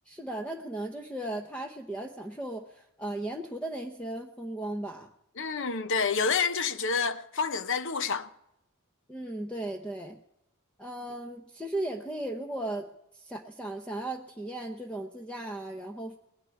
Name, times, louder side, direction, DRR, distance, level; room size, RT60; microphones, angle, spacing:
voice 1, 0.1-5.1 9.1-10.2 10.8-12.9 13.1-16.2, right 1 dB, 5° left, 0.8 m, -36 dB
voice 2, 5.4-8.3, left 5 dB, 60° left, 0.9 m, -28 dB
19.5 x 6.8 x 9.7 m
head